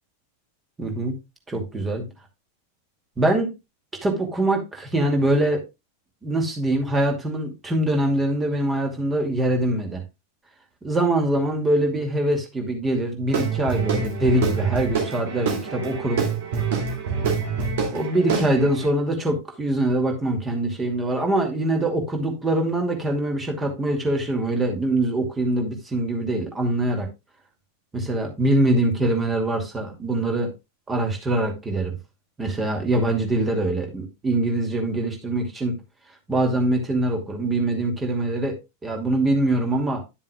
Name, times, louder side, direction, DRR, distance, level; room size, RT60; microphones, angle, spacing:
voice 1, 0.8-1.1 1.5-2.1 3.2-3.5 4.0-5.6 6.2-10.0 10.8-16.3 17.9-27.1 27.9-30.5 30.9-32.0 32.4-35.8 36.3-40.0, right 1 dB, 15° right, 2.4 m, -23 dB
Guitar / Drum, 13.3-18.9, right 5 dB, 55° right, 2.6 m, -26 dB
11.0 x 7.3 x 2.3 m
figure-of-eight pair, 90°, 0 cm